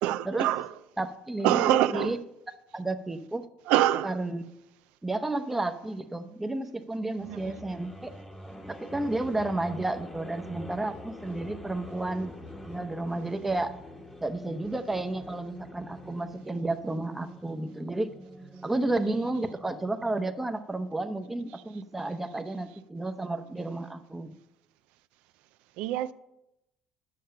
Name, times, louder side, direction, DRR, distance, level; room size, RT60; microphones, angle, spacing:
voice 1, 0.0-0.7 1.4-2.2 3.7-4.1 7.3-7.5 25.8-26.1, right 13 dB, 85° right, 0.4 m, -25 dB
voice 2, 1.0-2.2 2.7-3.4 4.0-4.4 5.0-8.1 8.7-12.3 12.6-13.7 14.2-18.1 18.6-24.4, right 2 dB, 10° right, 0.7 m, -32 dB
sound 1, 7.1-20.4, equal, 10° left, 1.0 m, -46 dB
9.9 x 7.6 x 5.6 m
cardioid pair, 125°, 2 cm